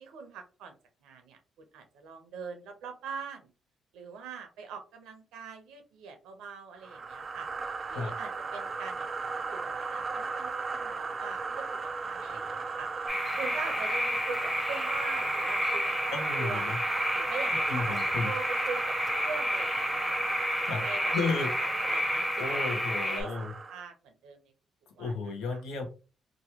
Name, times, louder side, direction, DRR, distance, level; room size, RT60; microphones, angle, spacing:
voice 1, 0.0-1.4 1.7-3.5 3.9-7.5 7.9-12.9 13.4-15.9 16.4-16.7 17.1-20.4 20.8-24.4 25.0-25.1 25.5-25.6, right 5 dB, 90° right, 6 dB, 0.7 m, -42 dB
sound 1, 6.8-23.8, right 4 dB, 35° right, 0.3 m, -36 dB
sound 2, 13.1-23.2, left 1 dB, 15° left, 0.8 m, -31 dB
voice 2, 16.1-16.8 17.7-18.3 20.6-20.8 21.1-21.5 22.4-23.5 25.0-25.9, left 4 dB, 90° left, 4 dB, 0.8 m, -33 dB
3.0 x 2.2 x 2.8 m, 0.33 s
cardioid pair, 90°, 0 cm